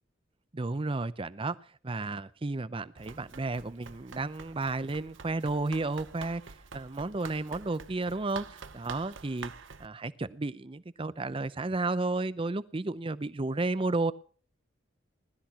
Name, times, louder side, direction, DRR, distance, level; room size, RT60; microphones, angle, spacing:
voice 1, 0.5-1.6 1.8-6.4 6.7-9.5 9.8-14.1, right 2 dB, 30° right, 16 dB, 0.6 m, -32 dB
Run, 3.0-9.9, right 5 dB, 75° right, 0.9 m, -47 dB
20.5 x 12.5 x 2.9 m, 0.42 s
head